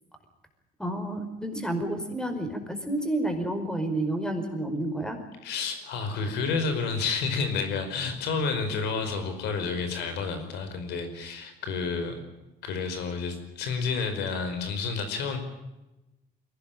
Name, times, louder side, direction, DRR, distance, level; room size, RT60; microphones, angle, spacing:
voice 1, 0.8-5.2, right 1 dB, 5° left, 7 dB, 4.9 m, -30 dB
voice 2, 5.4-12.2 12.6-15.4, left 4 dB, 85° left, 8 dB, 5.0 m, -30 dB
22.5 x 18.5 x 9.0 m, 1.0 s
cardioid pair, 110°, 17 cm